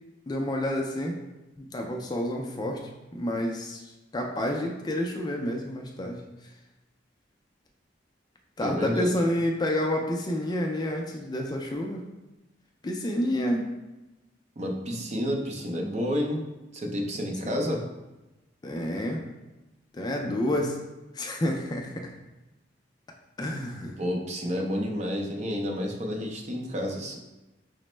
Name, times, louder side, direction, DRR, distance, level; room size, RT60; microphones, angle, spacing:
voice 1, 0.3-1.2 1.6-6.2 8.6-12.1 12.8-13.7 17.4-17.6 18.6-19.2 19.9-20.8 21.1-22.1 23.4-24.0, left 1 dB, 20° left, 2 dB, 0.3 m, -29 dB
voice 2, 8.6-9.1 14.6-16.4 16.7-17.8 24.0-27.2, equal, 40° right, 1 dB, 0.5 m, -30 dB
5.0 x 2.0 x 3.1 m, 1.0 s
head